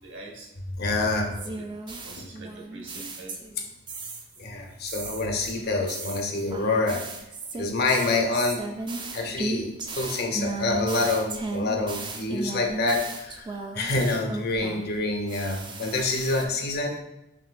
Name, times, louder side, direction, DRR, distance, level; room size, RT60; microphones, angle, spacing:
voice 1, 0.0-0.5 1.3-1.7 2.1-3.3, right 2 dB, 60° right, -1 dB, 0.9 m, -44 dB
voice 2, 0.8-1.4 4.4-7.1 7.6-8.6 9.1-17.0, left 2 dB, 50° left, 3 dB, 0.5 m, -27 dB
sound 1, 1.3-3.6 3.9-4.4 4.9-15.0 15.3-16.4, right 3 dB, 25° right, 0.3 m, -35 dB
5.7 x 2.6 x 2.3 m, 0.91 s
head